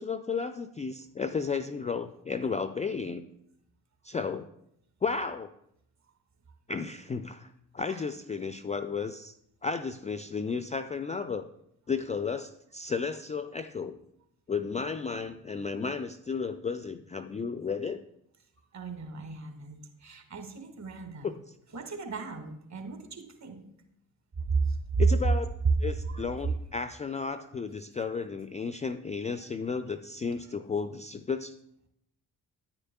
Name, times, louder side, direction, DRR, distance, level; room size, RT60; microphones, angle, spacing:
voice 1, 0.0-3.3 4.0-4.5 5.0-5.5 6.7-9.3 9.6-11.5 11.9-14.0 14.5-18.0 21.2-21.4 25.0-31.5, left 5 dB, 15° left, 11 dB, 0.4 m, -33 dB
voice 2, 18.7-21.4 21.7-23.6 24.5-25.0 26.1-26.2 27.3-27.5 29.3-29.4, right 4 dB, 40° right, 5 dB, 1.7 m, -35 dB
9.7 x 9.2 x 2.3 m, 0.78 s
hypercardioid pair, 40°, 44 cm